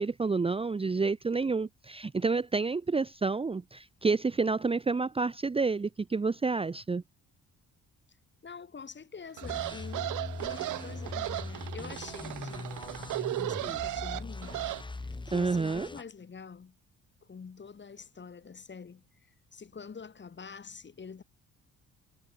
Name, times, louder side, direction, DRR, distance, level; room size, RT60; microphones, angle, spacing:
voice 1, 0.0-7.0 15.3-15.9, right 4 dB, 20° right, 0.8 m, -29 dB
voice 2, 8.4-12.7 13.2-16.8 17.2-19.1 19.5-21.2, left 5 dB, 35° left, 4.4 m, -46 dB
sound 1, 9.4-16.0, left 3 dB, 15° left, 1.5 m, -41 dB
sound 2, 9.4-14.8, right 16 dB, 85° right, 1.3 m, -36 dB
cardioid pair, 90°, 30 cm